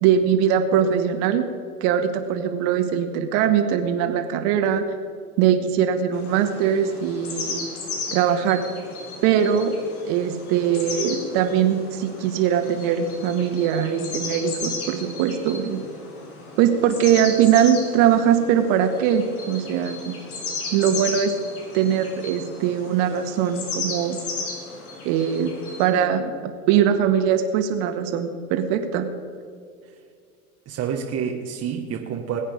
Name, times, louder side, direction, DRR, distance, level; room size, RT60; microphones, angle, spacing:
voice 1, 0.0-1.5 1.8-4.8 5.4-7.7 8.1-8.6 9.2-9.7 10.0-15.8 16.6-20.2 20.7-21.3 21.7-24.2 25.0-25.5 25.8-29.1, right 9 dB, 55° right, 6 dB, 2.0 m, -21 dB
sound 1, 6.1-25.9, left 3 dB, 75° left, 4.2 m, -35 dB
voice 2, 30.6-32.4, right 7 dB, 35° right, 1 dB, 1.4 m, -28 dB
21.0 x 8.9 x 5.2 m, 2.3 s
hypercardioid pair, 100°, 44 cm